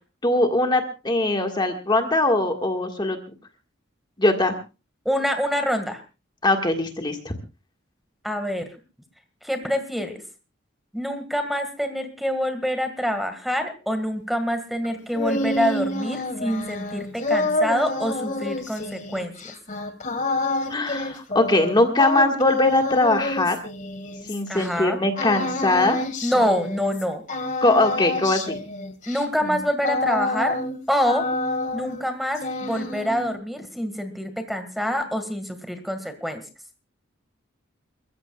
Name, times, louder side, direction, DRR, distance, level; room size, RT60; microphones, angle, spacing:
voice 1, 0.2-3.2 4.2-4.5 6.4-7.3 20.7-23.6 24.3-26.0 27.6-28.6, left 2 dB, 25° left, 4 dB, 1.7 m, -21 dB
voice 2, 5.1-6.0 8.2-8.7 9.4-10.2 10.9-19.5 24.5-25.0 26.2-27.2 29.1-30.6 30.9-31.2 31.7-36.4, equal, ahead, 8 dB, 1.8 m, -26 dB
sound 1, 14.8-24.7 25.2-27.0 27.3-30.8 31.0-32.1 32.4-33.3, left 2 dB, 40° left, 2.0 m, -28 dB
29.5 x 14.5 x 2.4 m, 0.31 s
head